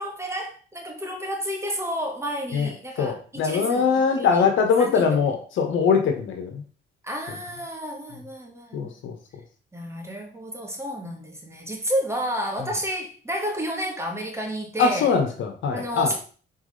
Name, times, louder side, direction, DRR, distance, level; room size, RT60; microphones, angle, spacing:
voice 1, 0.0-4.5 4.8-5.3 7.0-8.9 9.7-15.2 15.7-16.2, equal, 15° right, 1 dB, 1.8 m, -31 dB
voice 2, 3.0-6.6 8.7-9.1 14.8-16.1, left 5 dB, 75° left, 3 dB, 1.5 m, -22 dB
6.3 x 4.7 x 3.3 m, 0.39 s
cardioid pair, 90°, 20 cm